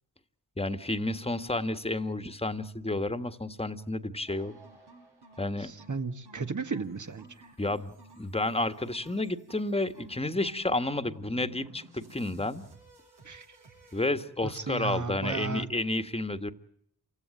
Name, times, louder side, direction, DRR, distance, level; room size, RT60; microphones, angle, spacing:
voice 1, 0.6-4.5 5.4-5.7 7.6-12.6 13.9-16.5, left 2 dB, 15° left, 11 dB, 1.6 m, -31 dB
sound 1, 4.3-14.1, right 2 dB, 85° right, 8.0 m, -54 dB
voice 2, 5.6-7.3 13.3-13.5 14.5-15.7, right 4 dB, 50° right, 9 dB, 1.9 m, -34 dB
27.5 x 16.5 x 9.0 m, 0.73 s
cardioid pair, 50°, 39 cm